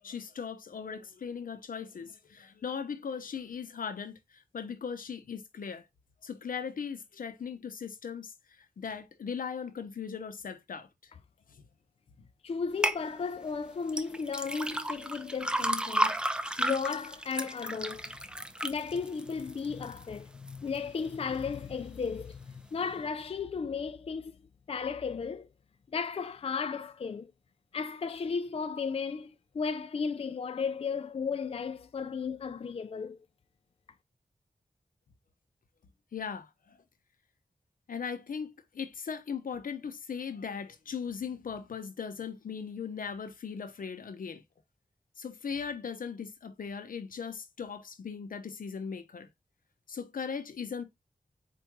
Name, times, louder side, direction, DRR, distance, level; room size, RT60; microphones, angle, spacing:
voice 1, 0.0-5.9 6.2-11.1 11.5-11.6 12.2-12.3 36.1-36.8 37.9-44.4 45.2-49.3 49.9-50.8, left 6 dB, 80° left, 0.7 m, -39 dB
voice 2, 12.4-16.2 16.6-18.2 18.6-24.4 24.7-25.5 25.9-27.3 27.7-33.2, left 5 dB, 45° left, 0.4 m, -34 dB
sound 1, 12.8-13.0 13.9-20.0 20.5-21.0 21.5-21.6, right 1 dB, 5° right, 0.5 m, -32 dB
4.6 x 2.5 x 4.5 m
wide cardioid pair, 75°, 14 cm